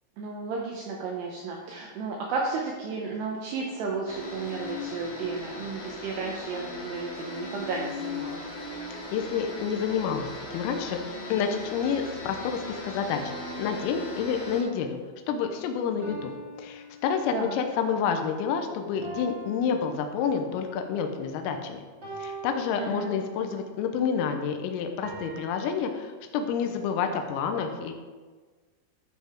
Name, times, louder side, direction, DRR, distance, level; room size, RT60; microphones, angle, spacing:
voice 1, 0.2-8.4 17.3-17.5 22.8-23.1, right 4 dB, 75° right, -1 dB, 2.5 m, -33 dB
sound 1, 4.1-14.6, left 2 dB, 65° left, 5.4 m, -38 dB
voice 2, 9.1-11.0 11.3-13.3 13.6-15.0 15.3-16.3 16.6-21.8 22.2-27.9, left 6 dB, 90° left, 5 dB, 3.5 m, -29 dB
sound 2, 13.1-14.9 16.0-17.6 19.0-20.7 22.0-23.5 25.0-25.8, right 3 dB, 20° right, 2.5 m, -44 dB
12.5 x 5.5 x 4.4 m, 1.4 s
omnidirectional pair, 5.8 m